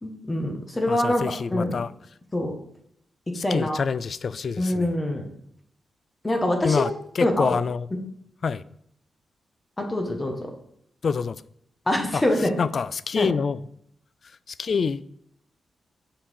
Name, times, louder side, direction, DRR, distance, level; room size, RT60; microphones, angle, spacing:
voice 1, 0.0-1.2 1.5-1.8 2.3-2.5 3.3-3.8 4.6-5.2 6.2-6.8 7.2-7.5 9.8-10.5 11.9-12.5 13.2-13.3, left 1 dB, 20° left, 1.6 m, -24 dB
voice 2, 0.9-1.9 3.4-4.9 6.6-6.9 7.2-7.9 8.4-8.6 11.0-11.4 12.1-12.2 12.6-13.6 14.6-15.0, left 5 dB, 50° left, 0.4 m, -26 dB
7.1 x 5.8 x 7.1 m
wide cardioid pair, 120°, 0 cm